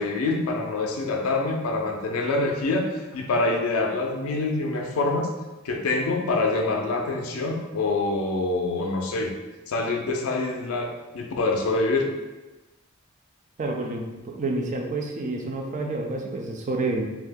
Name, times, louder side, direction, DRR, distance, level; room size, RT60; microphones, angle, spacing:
voice 1, 0.0-5.3 5.6-9.3 9.7-12.1, left 2 dB, 75° left, 2 dB, 0.4 m, -25 dB
voice 2, 13.6-17.1, right 2 dB, 35° right, 1 dB, 0.4 m, -29 dB
2.7 x 2.3 x 3.4 m, 1.1 s
head